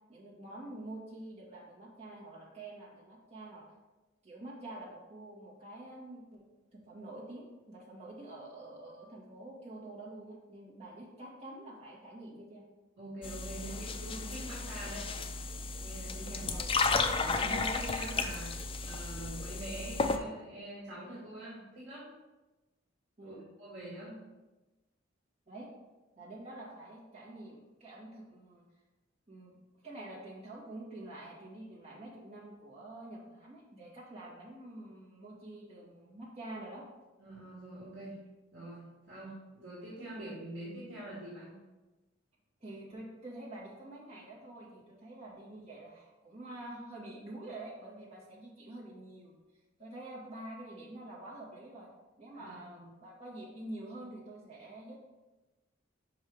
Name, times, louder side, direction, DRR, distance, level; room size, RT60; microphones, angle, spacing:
voice 1, 0.1-3.6 4.2-6.4 6.7-12.6 16.3-16.7 23.2-23.4 25.5-25.7 26.2-28.6 29.3-29.5 29.8-36.9 42.6-49.3 49.8-51.9 52.2-55.0, right 1 dB, 35° right, -6 dB, 2.2 m, -47 dB
voice 2, 13.0-15.1 15.8-16.8 17.2-22.1 23.2-24.2 37.2-38.2 38.5-41.5 52.3-52.9, right 1 dB, 60° right, -7 dB, 2.0 m, -45 dB
sound 1, 13.2-20.2, left 4 dB, 25° left, 0.4 m, -33 dB
5.6 x 5.3 x 4.8 m, 1.1 s
head